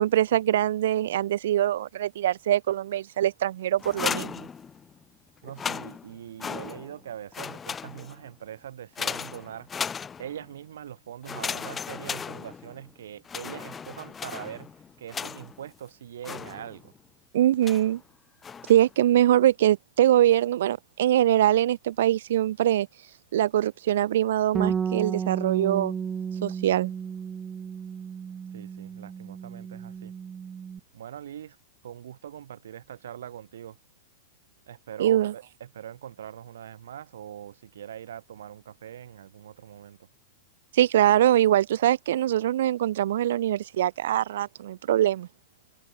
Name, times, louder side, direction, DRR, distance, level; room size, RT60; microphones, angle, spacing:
voice 1, 0.0-4.5 17.3-18.0 18.7-22.9 23.3-25.9 26.4-26.9 35.0-35.3 40.7-45.3, right 12 dB, 70° right, 0.4 m, -23 dB
sound 1, 3.8-5.0 5.4-7.0 7.3-8.3 9.0-10.5 11.2-12.9 13.2-15.7 16.2-17.0 17.6-18.0 18.4-18.9, left 6 dB, 15° left, 0.5 m, -36 dB
voice 2, 5.4-9.7 10.2-16.9 28.5-30.1 30.9-31.6 31.8-33.8 34.7-40.1, right 10 dB, 85° right, 5.0 m, -42 dB
Bass guitar, 24.5-30.8, right 7 dB, 15° right, 1.1 m, -33 dB
supercardioid pair, 160°, 0 cm